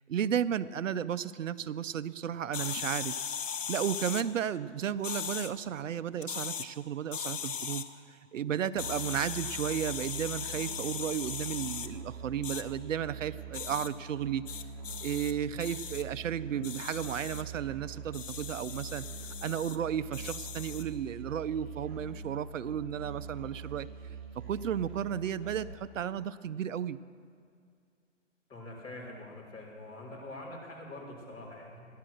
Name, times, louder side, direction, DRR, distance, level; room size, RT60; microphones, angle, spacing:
voice 1, 0.1-3.2 3.7-14.5 15.0-19.1 19.4-23.9 24.4-27.0, right 9 dB, 85° right, 15 dB, 0.6 m, -34 dB
sound 1, 2.5-4.2 5.0-5.5 6.2-6.7 7.1-7.8 8.8-11.9 12.4-12.6 13.5-13.9 14.5-15.3 15.6-16.0 16.6-17.4 18.1-19.8 20.1-20.9, left 7 dB, 80° left, 1.1 m, -38 dB
Musical instrument, 8.8-25.7, right 5 dB, 40° right, 3.2 m, -44 dB
voice 2, 28.5-31.9, left 1 dB, 15° left, -8 dB, 3.6 m, -45 dB
14.5 x 11.0 x 6.4 m, 2.3 s
hypercardioid pair, 155°, 37 cm